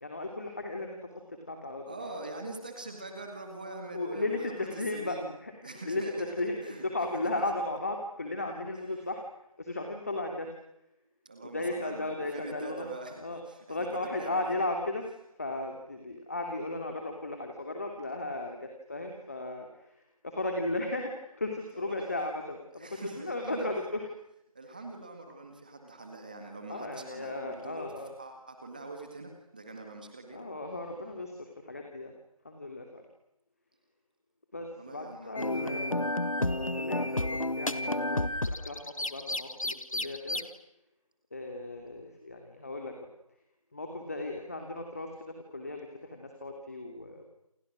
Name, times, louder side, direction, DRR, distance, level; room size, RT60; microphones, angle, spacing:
voice 1, 0.0-1.0 1.3-2.1 3.9-9.2 9.6-10.5 11.5-12.9 13.2-13.4 13.7-15.0 15.4-24.1 24.7-24.8 26.7-28.1 30.3-32.1 32.4-33.0 34.5-35.9 36.4-40.4 41.3-43.1 43.7-47.2, left 2 dB, 25° left, 3 dB, 2.7 m, -36 dB
voice 2, 1.9-5.3 5.6-6.1 6.6-6.9 7.1-7.3 11.3-13.2 13.5-14.6 21.7-22.1 22.7-23.9 24.6-27.9 28.2-30.5 34.8-36.1, right 2 dB, 15° right, 4 dB, 1.9 m, -44 dB
sound 1, 35.4-40.4, left 1 dB, 65° left, 1.8 m, -31 dB
29.0 x 28.5 x 6.3 m, 0.83 s
figure-of-eight pair, 170°, 18 cm